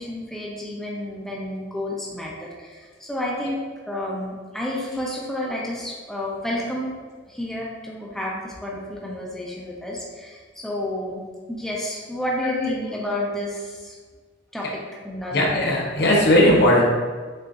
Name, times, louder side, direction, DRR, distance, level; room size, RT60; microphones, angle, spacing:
voice 1, 0.0-3.6 3.9-7.0 7.3-14.0 14.5-14.7 15.0-15.4, left 1 dB, ahead, -4 dB, 0.5 m, -30 dB
voice 2, 12.4-12.8 15.3-16.8, left 1 dB, 60° left, -2 dB, 0.8 m, -18 dB
6.5 x 2.5 x 2.4 m, 1.5 s
head